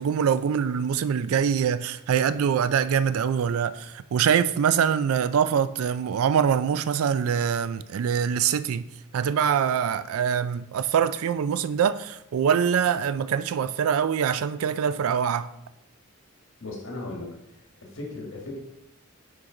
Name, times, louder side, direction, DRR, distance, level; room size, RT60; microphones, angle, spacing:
voice 1, 0.0-8.9 9.1-15.5, right 7 dB, 80° right, 0.3 m, -24 dB
voice 2, 16.6-17.4 17.8-18.6, left 2 dB, 65° left, 1.6 m, -36 dB
6.3 x 4.6 x 3.8 m
head